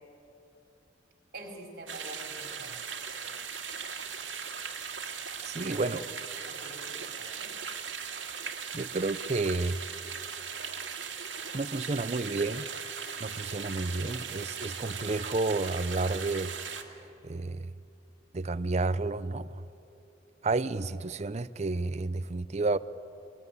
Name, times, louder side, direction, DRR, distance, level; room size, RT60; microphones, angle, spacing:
voice 1, 1.3-2.8 5.6-6.0 6.3-7.5, right 1 dB, 50° right, 4.5 m, -46 dB
sound 1, 1.9-16.8, right 6 dB, 80° right, 2.0 m, -39 dB
voice 2, 5.4-6.0 8.7-9.8 11.5-12.7 13.2-17.7 18.3-19.6 20.4-22.8, right 3 dB, 35° right, 0.5 m, -31 dB
23.5 x 20.5 x 9.7 m
head